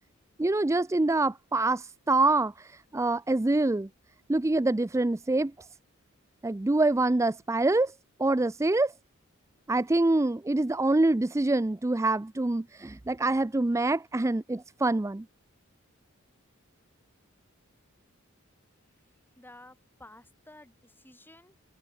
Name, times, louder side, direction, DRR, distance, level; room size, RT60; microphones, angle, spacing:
voice 1, 0.4-3.9 4.3-5.5 6.4-7.9 8.2-8.9 9.7-15.2, right 2 dB, 15° right, 0.4 m, -25 dB
voice 2, 19.4-21.6, left 1 dB, 10° left, 5.5 m, -53 dB
head